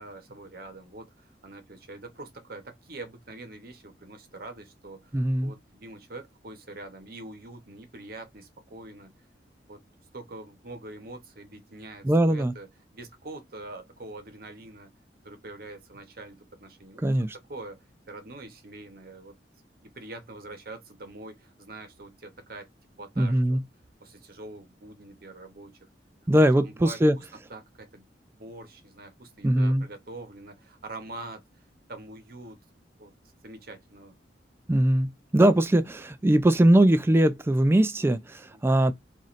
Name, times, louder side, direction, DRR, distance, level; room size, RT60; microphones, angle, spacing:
voice 1, 0.0-9.1 9.7-9.8 10.1-12.7 12.9-14.9 15.2-17.0 17.5-19.4 19.8-22.7 23.0-23.6 24.0-25.9 26.3-27.2 27.5-28.1 28.3-31.4 31.9-32.6 33.0-33.1 33.4-34.1 38.5-38.6, right 2 dB, 55° right, 0.9 m, -44 dB
voice 2, 5.1-5.5 12.0-12.5 17.0-17.4 23.2-23.6 26.3-27.2 29.4-29.8 34.7-38.9, right 1 dB, 15° right, 0.3 m, -21 dB
3.0 x 2.6 x 4.0 m
head